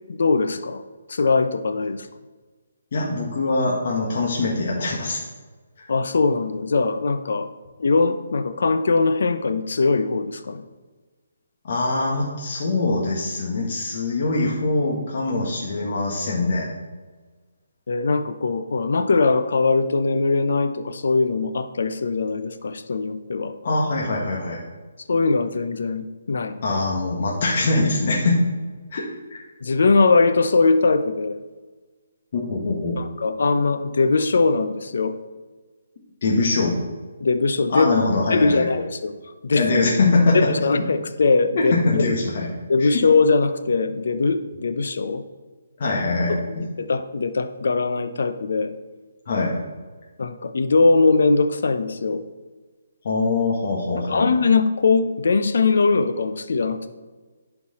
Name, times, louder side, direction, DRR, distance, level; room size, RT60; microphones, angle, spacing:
voice 1, 0.1-0.8 1.1-2.1 5.9-7.5 7.8-10.6 17.9-23.5 25.1-26.6 29.6-31.4 33.0-35.1 37.2-37.9 38.3-39.1 39.4-39.6 40.3-42.0 42.7-45.2 46.3-48.7 50.2-52.2 54.1-56.9, left 4 dB, 70° left, 10 dB, 0.7 m, -21 dB
voice 2, 2.9-5.2 5.8-5.9 11.6-16.7 23.6-24.6 26.6-28.4 28.9-29.0 29.3-29.4 32.3-33.0 36.2-36.8 37.7-38.7 39.5-40.5 41.5-42.5 42.8-43.0 45.8-46.6 49.3-49.6 53.0-54.3, left 3 dB, 50° left, -3 dB, 1.7 m, -23 dB
11.0 x 4.6 x 4.3 m, 1.3 s
hypercardioid pair, 150°, 0 cm